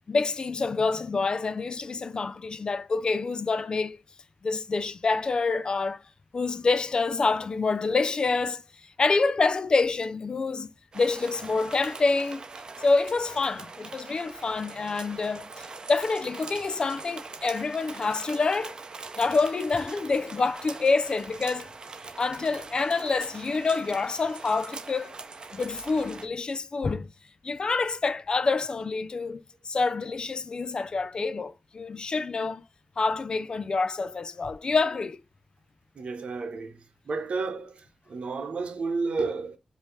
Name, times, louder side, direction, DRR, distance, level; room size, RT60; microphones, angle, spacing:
voice 1, 0.1-4.0 4.4-6.0 6.3-12.5 12.8-18.8 19.2-21.7 22.2-25.1 25.5-27.1 27.4-32.6 33.0-35.2, left 4 dB, 40° left, 0.4 m, -27 dB
sound 1, 10.9-26.3, right 4 dB, 40° right, 0.6 m, -42 dB
voice 2, 35.9-39.6, right 4 dB, 65° right, 0.9 m, -32 dB
5.0 x 2.7 x 3.2 m
wide cardioid pair, 120°, 2 cm